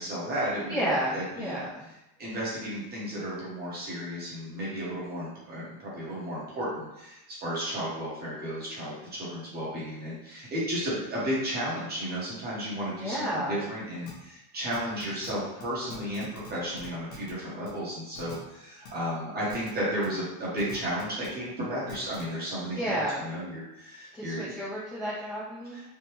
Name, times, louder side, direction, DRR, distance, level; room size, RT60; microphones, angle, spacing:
voice 1, 0.0-0.9 1.1-1.6 2.2-24.5 25.7-25.8, equal, 20° right, -7 dB, 0.9 m, -33 dB
voice 2, 0.7-1.9 13.0-13.6 22.8-23.3 24.1-25.8, equal, 10° left, -14 dB, 0.5 m, -31 dB
sound 1, 14.1-14.2 14.7-15.3 15.6-15.7 15.9-16.5 16.8-17.3 17.7-17.8 18.1-18.3 18.8-18.9 19.5-19.7 20.0-20.1 20.6-21.3 21.9-22.2, left 5 dB, 65° left, 1.1 m, -44 dB
3.4 x 2.1 x 2.9 m, 0.91 s
cardioid pair, 160°, 49 cm